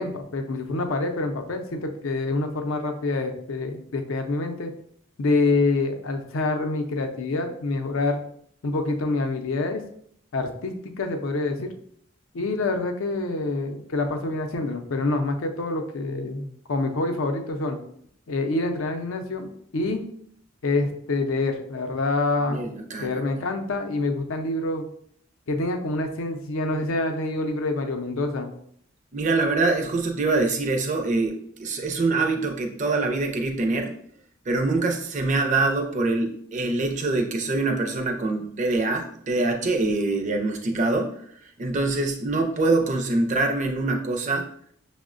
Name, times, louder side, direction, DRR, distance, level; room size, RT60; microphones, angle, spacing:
voice 1, 0.0-4.7 5.2-8.2 8.6-9.8 10.3-11.7 12.3-17.8 18.3-20.1 20.6-22.7 23.0-24.9 25.5-28.5, left 2 dB, 75° left, 6 dB, 0.5 m, -26 dB
voice 2, 22.5-23.1 29.1-33.9 34.5-41.1 41.6-44.5, right 3 dB, 35° right, 3 dB, 0.4 m, -24 dB
6.0 x 2.1 x 2.4 m, 0.66 s
head